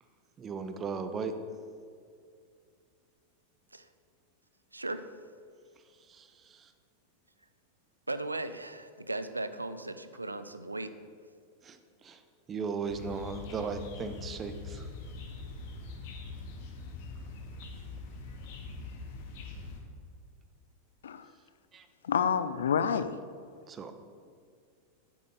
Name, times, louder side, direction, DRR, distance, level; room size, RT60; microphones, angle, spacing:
voice 1, 0.4-1.3 6.1-6.7 11.6-12.2 12.5-14.9 21.7-21.9 23.7-23.9, right 5 dB, 25° right, 8 dB, 1.0 m, -37 dB
voice 2, 4.7-5.0 8.1-10.9, right 2 dB, 80° right, 11 dB, 0.6 m, -37 dB
sound 1, 12.9-19.8, left 3 dB, 50° left, 2.0 m, -43 dB
voice 3, 22.0-23.2, left 7 dB, 65° left, 13 dB, 0.6 m, -28 dB
9.4 x 9.2 x 6.9 m, 2.2 s
figure-of-eight pair, 90°, 0 cm